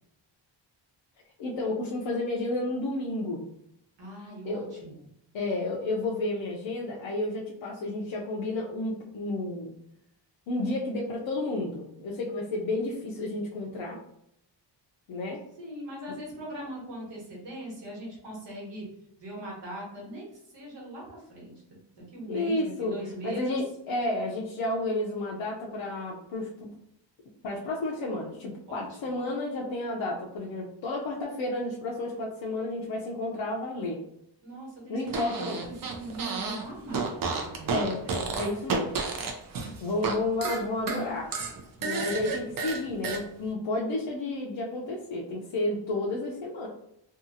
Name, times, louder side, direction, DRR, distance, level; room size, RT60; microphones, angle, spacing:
voice 1, 1.4-3.4 4.4-4.7 5.3-9.7 10.5-14.0 15.1-15.4 22.3-23.0 23.2-26.7 27.4-34.0 34.9-35.7 37.7-38.0 38.4-38.9 39.8-41.3 41.8-46.7, left 2 dB, 80° left, -3 dB, 0.6 m, -31 dB
voice 2, 4.0-5.1 15.6-18.9 19.2-23.6 28.7-29.2 34.4-38.2 42.0-42.4, right 1 dB, 70° right, -4 dB, 1.3 m, -41 dB
Fart, 35.1-36.6 36.9-40.1 40.4-43.2, right 4 dB, 50° right, 0.5 m, -31 dB
2.7 x 2.3 x 2.6 m, 0.77 s
wide cardioid pair, 175°, 45 cm